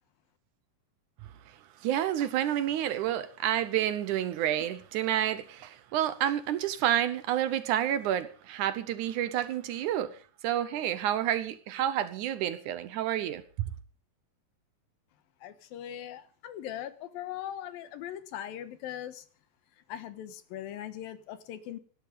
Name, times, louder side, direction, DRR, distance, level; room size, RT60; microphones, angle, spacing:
voice 1, 1.8-10.2 10.4-13.7, right 11 dB, 70° right, 2.1 m, -29 dB
voice 2, 15.4-19.2 19.9-21.8, left 11 dB, 85° left, 3.0 m, -40 dB
17.5 x 12.0 x 5.3 m
omnidirectional pair, 4.0 m